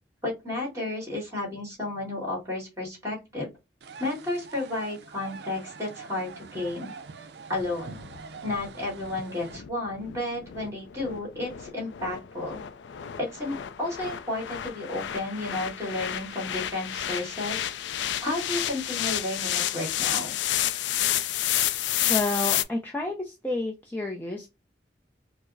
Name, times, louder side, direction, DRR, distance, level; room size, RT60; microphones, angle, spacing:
voice 1, 0.2-3.5 4.0-6.9 7.5-8.0 8.4-12.6 13.2-17.7 18.2-20.3, left 2 dB, 15° right, -2 dB, 1.8 m, -32 dB
sound 1, 3.8-9.6, right 4 dB, 65° right, 0.4 m, -44 dB
sound 2, 7.6-22.6, left 12 dB, 80° left, 0.4 m, -31 dB
voice 2, 22.1-24.5, left 2 dB, 10° left, -1 dB, 0.4 m, -30 dB
4.5 x 2.0 x 2.5 m, 0.24 s
head